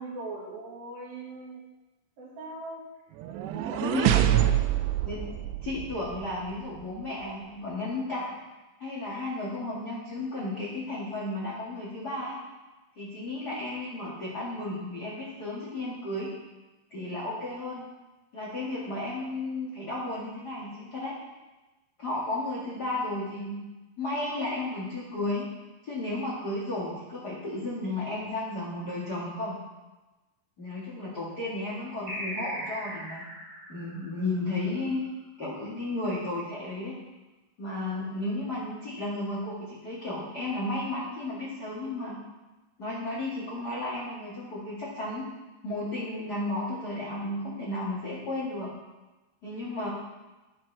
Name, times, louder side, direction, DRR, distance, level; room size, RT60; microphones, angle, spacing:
voice 1, 0.0-1.6 2.2-2.8 3.3-3.8 4.3-4.8 5.1-5.3, right 2 dB, 65° right, -4 dB, 3.4 m, -41 dB
sound 1, 3.2-6.3, right 12 dB, 90° right, 2.7 m, -26 dB
voice 2, 3.8-4.4 5.0-5.2 5.6-8.4 8.8-12.4 13.0-16.3 16.9-17.8 18.3-21.2 22.0-23.5 24.0-25.5 25.8-29.6 30.6-33.2 33.7-35.0 35.4-36.9 37.6-42.1 42.8-45.2 45.6-48.7 49.4-49.9, left 2 dB, 70° left, -6 dB, 0.9 m, -33 dB
sound 2, 32.1-35.1, equal, 40° right, 1.3 m, -38 dB
15.0 x 5.8 x 3.3 m, 1.1 s
omnidirectional pair, 4.8 m